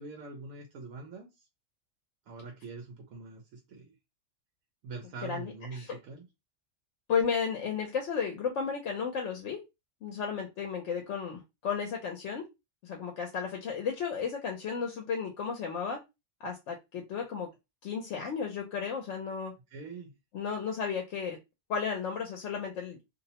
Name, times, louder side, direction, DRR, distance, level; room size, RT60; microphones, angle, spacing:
voice 1, 0.0-1.5 2.3-3.9 4.8-6.3 19.7-20.1, right 3 dB, 80° right, 2 dB, 1.0 m, -44 dB
voice 2, 5.2-6.0 7.1-9.6 10.0-12.4 12.8-16.0 16.4-17.5 17.8-19.5 20.3-21.4 21.7-23.0, left 6 dB, 70° left, 2 dB, 0.8 m, -33 dB
2.6 x 2.0 x 2.8 m, 0.23 s
omnidirectional pair, 1.4 m